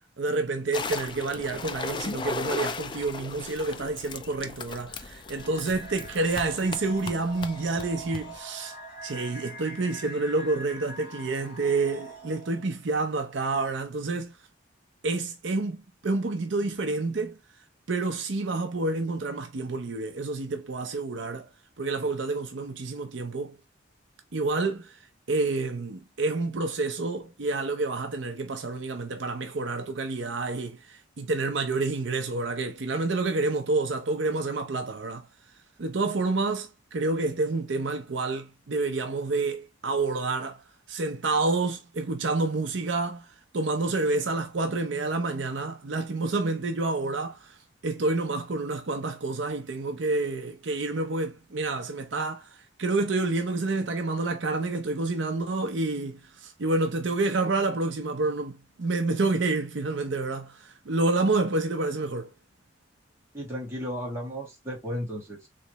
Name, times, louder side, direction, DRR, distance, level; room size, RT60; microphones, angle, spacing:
voice 1, 0.2-8.8 9.0-14.4 15.0-17.4 17.9-21.5 21.8-23.6 24.3-25.0 25.3-35.3 35.8-43.3 43.5-47.6 47.8-62.3, right 3 dB, 65° right, 0.6 m, -28 dB
sound 1, 0.7-8.4, left 4 dB, 25° left, 0.4 m, -37 dB
sound 2, 5.2-12.8, right 1 dB, 40° left, 1.6 m, -44 dB
voice 2, 63.3-65.5, equal, 15° right, 2.0 m, -34 dB
3.8 x 3.2 x 2.9 m
head